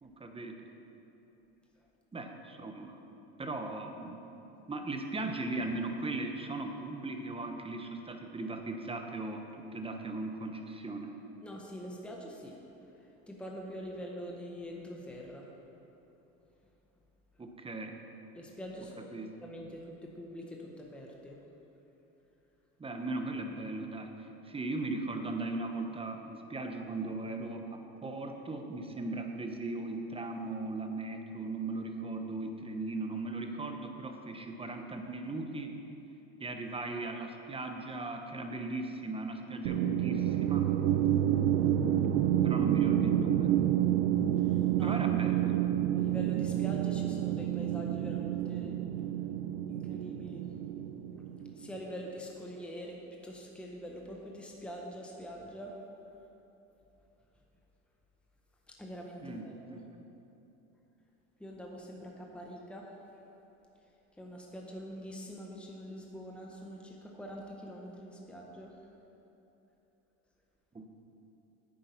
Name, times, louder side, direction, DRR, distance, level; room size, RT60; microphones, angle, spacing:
voice 1, 0.0-0.7 2.1-3.0 3.4-4.2 4.7-9.4 9.7-11.1 17.4-18.0 19.1-19.3 22.8-24.1 24.4-35.8 36.4-40.7 42.4-43.5 44.8-45.6 59.2-60.0 70.7-70.9, right 2 dB, 15° right, 4 dB, 1.1 m, -38 dB
voice 2, 11.4-12.6 13.0-15.5 18.3-19.1 19.4-21.4 44.5-45.0 45.9-48.8 49.7-50.4 51.6-55.7 58.7-59.8 61.4-62.9 64.2-68.7, equal, 5° left, -1 dB, 1.4 m, -44 dB
sound 1, 39.6-51.8, right 11 dB, 85° right, 0.7 m, -29 dB
9.6 x 8.6 x 5.8 m, 3.0 s
supercardioid pair, 100°, 33 cm